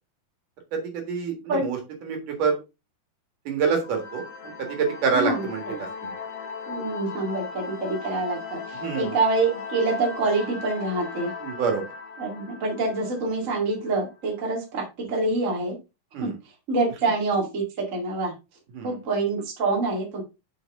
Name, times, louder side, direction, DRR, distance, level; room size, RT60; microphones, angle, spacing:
voice 1, 0.7-2.6 3.5-6.1 8.8-9.2 11.4-11.8 16.1-16.4 18.7-19.0, right 5 dB, 70° right, 3 dB, 3.3 m, -27 dB
sound 1, 3.8-14.1, left 5 dB, 65° left, 2.6 m, -38 dB
voice 2, 5.1-5.8 6.7-11.3 12.2-15.8 16.2-16.3 16.7-18.3 18.8-20.2, right 3 dB, 25° right, 0 dB, 2.0 m, -26 dB
7.2 x 6.1 x 3.6 m, 0.26 s
omnidirectional pair, 4.0 m